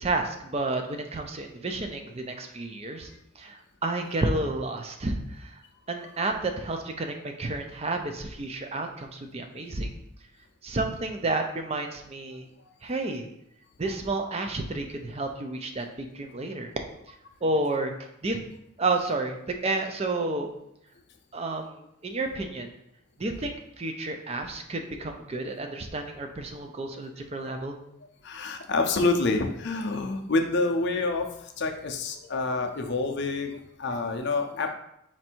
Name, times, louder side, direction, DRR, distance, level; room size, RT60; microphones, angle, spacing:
voice 1, 0.0-3.1 3.4-5.6 5.9-9.9 10.6-12.5 12.8-13.2 13.8-16.7 17.4-18.4 18.8-20.5 21.3-22.7 23.2-27.8, right 2 dB, 30° right, 4 dB, 0.4 m, -31 dB
voice 2, 28.2-34.7, left 3 dB, 50° left, 4 dB, 0.5 m, -27 dB
4.4 x 2.6 x 4.3 m, 0.79 s
head